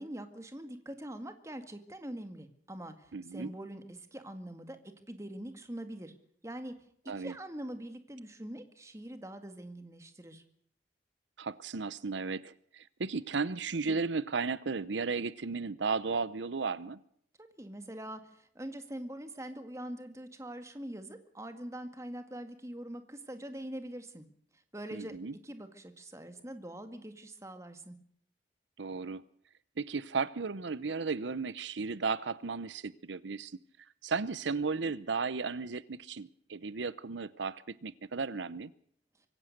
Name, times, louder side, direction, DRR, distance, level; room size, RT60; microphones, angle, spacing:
voice 1, 0.0-4.8 5.1-6.1 6.4-6.7 7.1-10.4 17.4-24.3 24.7-25.2 25.4-28.0, right 1 dB, 15° right, 8 dB, 2.0 m, -43 dB
voice 2, 3.1-3.5 7.1-7.3 11.4-17.0 24.9-25.3 28.8-29.2 29.8-33.6 34.0-38.7, right 4 dB, 85° right, 17 dB, 0.8 m, -35 dB
24.5 x 16.0 x 6.7 m, 0.63 s
head